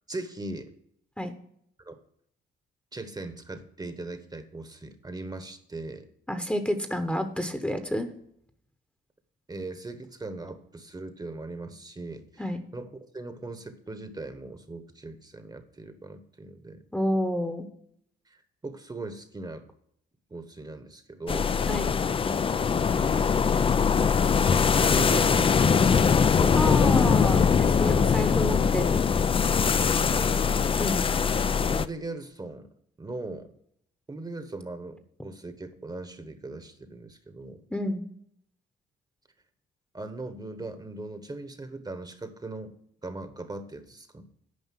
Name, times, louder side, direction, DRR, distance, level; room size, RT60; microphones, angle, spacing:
voice 1, 0.1-0.7 1.8-2.0 2.9-6.1 9.5-16.8 18.3-19.7 20.3-21.6 23.0-23.4 24.8-25.9 26.4-26.9 29.6-30.7 31.6-32.7 33.0-33.5 34.1-37.6 39.9-42.8 43.0-44.3, right 2 dB, 20° right, 9 dB, 1.1 m, -39 dB
voice 2, 6.3-8.1 12.4-12.6 16.9-17.7 21.7-21.9 26.5-29.0 30.7-31.0 37.7-38.0, equal, 5° left, 7 dB, 1.0 m, -29 dB
sound 1, 21.3-31.8, left 6 dB, 25° left, 0.4 m, -22 dB
9.6 x 5.3 x 7.5 m, 0.69 s
cardioid pair, 90°, 20 cm